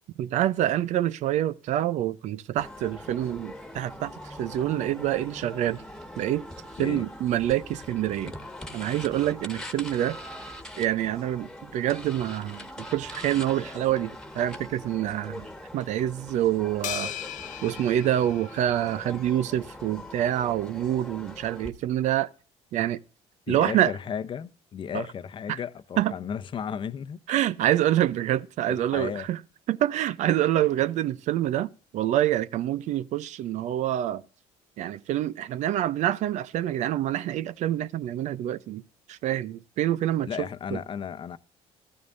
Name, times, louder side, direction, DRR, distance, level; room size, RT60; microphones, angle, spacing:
voice 1, 0.2-4.1 4.4-5.8 6.2-6.4 6.8-8.3 8.7-10.2 10.8-15.5 15.7-17.1 17.6-22.3 22.7-23.0 23.5-23.9 24.9-25.1 25.5-25.6 26.0-26.1 27.3-29.4 29.7-31.7 31.9-34.2 34.8-38.8 39.1-40.8, right 12 dB, 65° right, 0.7 m, -26 dB
sound 1, 2.6-21.7, left 1 dB, 5° left, 1.7 m, -42 dB
sound 2, 16.8-19.3, left 13 dB, 75° left, 0.9 m, -38 dB
voice 2, 23.5-27.2 28.7-29.3 40.2-41.4, left 7 dB, 40° left, 0.8 m, -34 dB
14.0 x 13.0 x 2.6 m
supercardioid pair, 95°, 13 cm